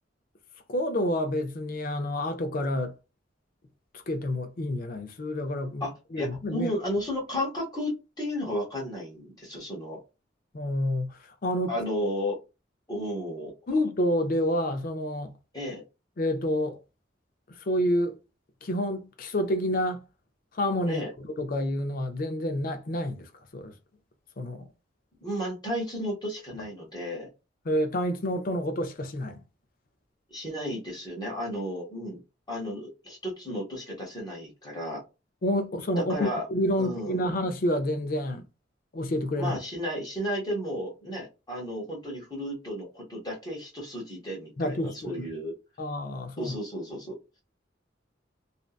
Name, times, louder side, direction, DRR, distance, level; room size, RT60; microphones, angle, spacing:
voice 1, 0.7-3.0 3.9-6.7 10.5-11.8 13.7-15.4 16.2-16.8 17.5-18.2 18.6-20.0 20.5-23.7 24.4-24.7 27.6-29.4 35.4-38.5 38.9-39.6 44.6-45.1 45.8-46.5, left 1 dB, 50° left, 0.5 m, -29 dB
voice 2, 5.8-10.0 11.7-12.4 12.9-13.5 15.5-15.8 20.9-21.1 25.2-27.3 30.3-32.2 32.5-35.0 36.1-36.4 36.8-37.3 39.4-45.5 46.4-47.2, equal, 20° left, 1.0 m, -33 dB
2.6 x 2.2 x 2.3 m
head